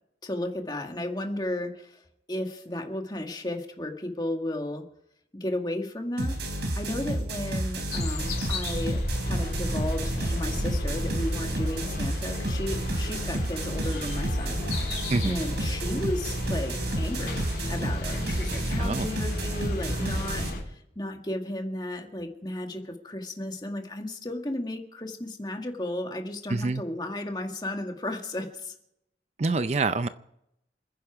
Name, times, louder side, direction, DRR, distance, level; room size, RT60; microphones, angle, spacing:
voice 1, 0.2-2.0 2.3-4.8 5.3-6.4 6.7-17.4 17.7-28.7, left 1 dB, 25° left, 3 dB, 1.9 m, -34 dB
sound 1, 6.2-20.5, right 1 dB, 75° right, 3.8 m, -31 dB
sound 2, 7.9-20.6, left 1 dB, 65° left, 3.8 m, -33 dB
voice 2, 26.5-26.8 29.4-30.1, right 3 dB, 40° right, 12 dB, 0.5 m, -26 dB
28.0 x 10.5 x 4.8 m, 0.79 s
head